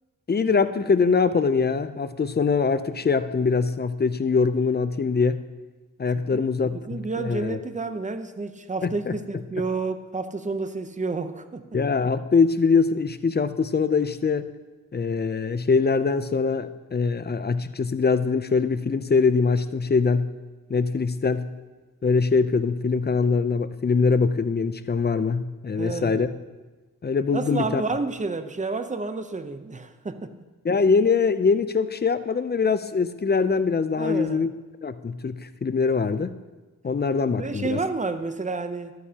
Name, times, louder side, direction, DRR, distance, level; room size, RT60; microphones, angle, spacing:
voice 1, 0.3-5.4 6.0-7.6 8.8-9.1 11.7-14.5 14.9-20.3 20.7-21.5 22.0-26.3 27.0-27.8 30.6-34.5 34.8-36.3 36.8-37.8, left 5 dB, 30° left, 12 dB, 0.5 m, -23 dB
voice 2, 6.3-11.7 25.8-26.2 27.3-30.3 34.0-34.5 37.3-38.9, right 3 dB, 25° right, 9 dB, 0.7 m, -30 dB
12.0 x 9.4 x 2.9 m, 1.2 s
wide cardioid pair, 80°, 32 cm